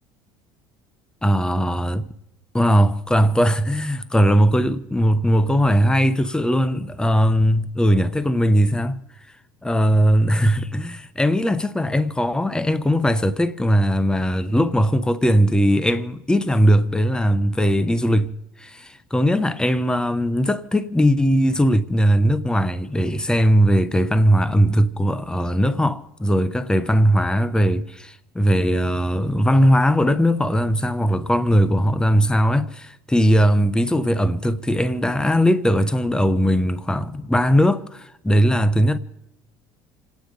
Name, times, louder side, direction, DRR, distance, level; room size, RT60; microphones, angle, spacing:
voice 1, 1.2-2.1 2.5-9.0 9.6-18.3 18.6-39.0, equal, 5° left, 1.0 m, -19 dB
27.5 x 9.5 x 5.3 m
supercardioid pair, 90°, 11 cm